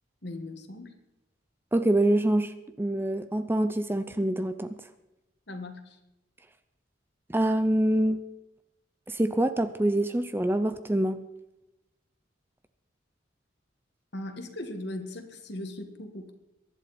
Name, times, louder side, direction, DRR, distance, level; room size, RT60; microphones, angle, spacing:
voice 1, 0.2-0.9 5.5-6.0 14.1-16.3, left 1 dB, 60° left, 6 dB, 1.9 m, -38 dB
voice 2, 1.7-4.7 7.3-8.2 9.1-11.2, right 1 dB, 10° right, 11 dB, 0.5 m, -25 dB
23.0 x 11.5 x 4.3 m, 0.95 s
head